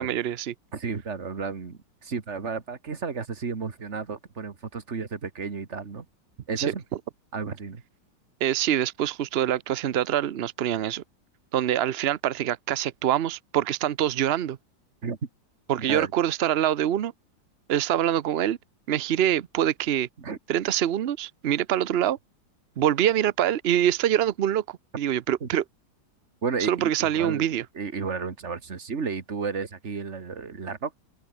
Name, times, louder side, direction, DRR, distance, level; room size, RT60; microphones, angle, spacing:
voice 1, 0.0-0.5 6.6-6.7 8.4-11.0 11.5-14.6 15.7-17.1 17.7-18.6 18.9-20.1 20.5-22.2 22.8-25.6 26.7-27.6, right 11 dB, 85° right, 0.5 m, -25 dB
voice 2, 0.7-6.1 6.5-6.8 7.3-7.8 15.0-15.2 15.9-16.1 20.2-20.4 25.4-25.5 26.4-27.5 27.7-30.9, right 5 dB, 40° right, 2.0 m, -32 dB
omnidirectional pair, 2.0 m